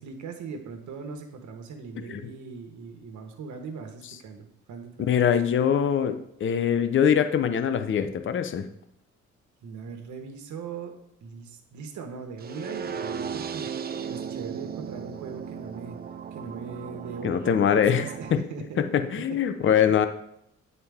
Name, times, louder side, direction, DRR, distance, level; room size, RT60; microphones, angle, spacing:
voice 1, 0.0-5.2 9.6-11.0 11.2-13.7 14.1-16.0 16.3-19.0 19.8-20.1, right 5 dB, 70° right, 5 dB, 1.2 m, -40 dB
voice 2, 5.1-8.7 17.2-18.0 18.3-18.4 18.8-20.1, left 8 dB, 40° left, 10 dB, 0.6 m, -23 dB
sound 1, 12.4-18.4, right 7 dB, 30° right, 0.4 m, -36 dB
8.7 x 4.2 x 3.5 m, 0.75 s
cardioid pair, 90°, 30 cm